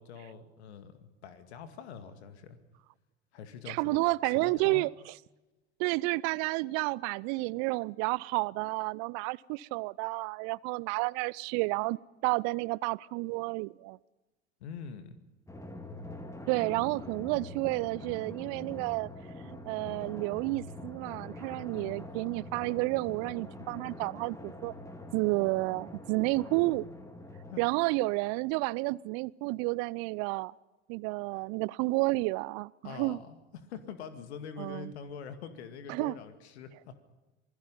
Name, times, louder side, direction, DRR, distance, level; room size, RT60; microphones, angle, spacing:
voice 1, 0.0-2.6 3.3-4.8 14.6-15.2 21.7-22.0 27.5-27.6 31.3-31.5 32.8-37.0, left 6 dB, 70° left, 2.2 m, -45 dB
voice 2, 3.7-4.9 5.8-12.0 12.2-14.0 16.5-19.1 19.4-24.7 25.1-26.9 27.6-30.5 30.9-33.2 34.6-34.9 35.9-36.1, right 23 dB, 50° right, 0.6 m, -31 dB
Drum, 15.5-28.6, left 1 dB, 10° left, 2.8 m, -45 dB
27.0 x 20.0 x 5.5 m
figure-of-eight pair, 70°, 34 cm